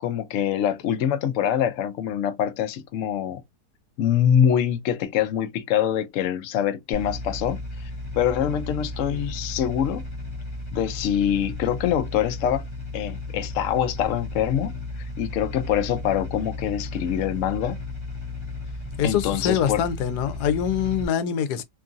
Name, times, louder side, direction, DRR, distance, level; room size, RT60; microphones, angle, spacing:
voice 1, 0.0-3.4 4.0-10.0 10.7-12.7 12.9-14.7 15.2-17.8 19.0-19.8, left 9 dB, 65° left, 0.8 m, -24 dB
sound 1, 6.9-21.0, left 2 dB, 20° left, 0.9 m, -34 dB
voice 2, 19.0-21.6, left 8 dB, 90° left, 1.2 m, -24 dB
2.9 x 2.5 x 2.5 m
omnidirectional pair, 1.7 m